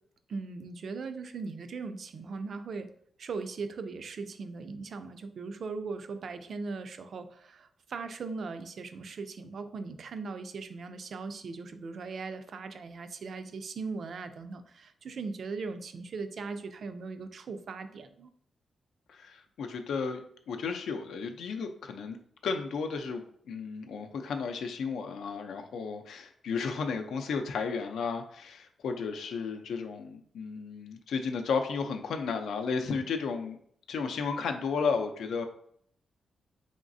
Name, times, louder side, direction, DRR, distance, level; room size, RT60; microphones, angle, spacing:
voice 1, 0.3-2.9 3.2-18.3, right 4 dB, 50° right, 10 dB, 0.3 m, -39 dB
voice 2, 19.1-22.2 22.4-33.6 33.9-35.5, left 5 dB, 85° left, 6 dB, 0.5 m, -33 dB
4.0 x 3.6 x 2.6 m, 0.64 s
wide cardioid pair, 175°, 0 cm